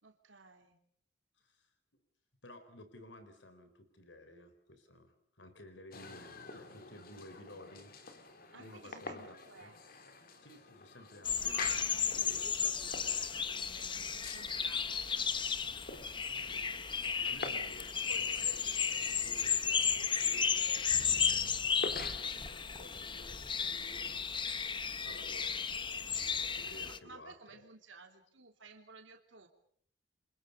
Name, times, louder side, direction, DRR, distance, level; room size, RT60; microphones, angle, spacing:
voice 1, 0.0-0.8 8.5-9.8 11.4-15.1 26.8-29.5, right 4 dB, 80° right, 4 dB, 3.3 m, -55 dB
voice 2, 1.4-2.0 2.4-7.9 8.6-9.7 10.4-12.5 16.4-16.7 17.2-25.6 26.1-27.4, left 1 dB, 70° left, 10 dB, 4.2 m, -55 dB
sound 1, 5.9-22.7, left 3 dB, 50° left, 3.2 m, -49 dB
sound 2, 11.2-27.0, left 6 dB, 25° left, 1.1 m, -34 dB
29.5 x 26.0 x 5.4 m, 0.63 s
head